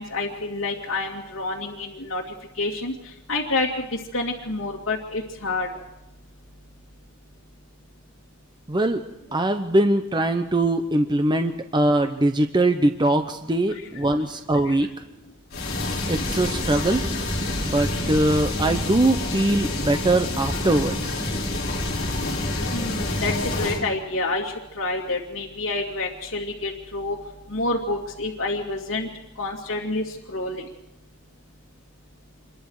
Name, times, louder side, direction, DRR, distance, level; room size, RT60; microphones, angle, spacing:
voice 1, 0.0-2.2 2.6-2.9 3.3-5.7 13.7-13.9 14.6-14.7 22.7-27.2 27.5-29.1 29.4-30.6, left 2 dB, 75° left, -4 dB, 2.5 m, -28 dB
voice 2, 8.7-9.0 9.3-14.9 16.1-17.0 17.6-21.2, right 1 dB, 20° right, 7 dB, 0.9 m, -22 dB
sound 1, 15.5-23.8, left 2 dB, 55° left, 6.2 m, -27 dB
27.0 x 22.5 x 4.9 m, 0.90 s
head